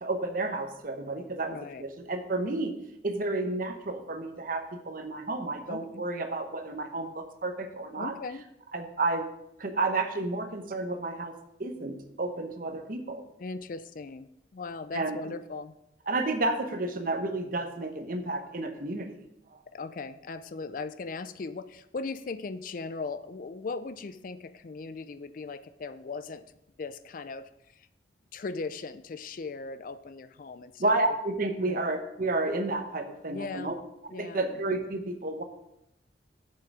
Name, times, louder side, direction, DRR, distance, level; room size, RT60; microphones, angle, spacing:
voice 1, 0.0-2.7 3.0-8.1 8.7-9.3 9.6-11.3 11.6-13.2 14.9-15.2 16.1-19.1 19.5-19.6 30.8-33.8 34.1-35.4, right 2 dB, 50° right, 7 dB, 0.9 m, -31 dB
voice 2, 1.5-1.9 5.7-6.1 8.0-8.4 13.4-15.8 19.7-26.5 26.8-27.9 28.3-30.9 31.6-31.8 33.3-33.7 34.1-34.5, left 4 dB, 45° left, 13 dB, 0.4 m, -38 dB
7.6 x 7.5 x 4.7 m, 0.82 s
head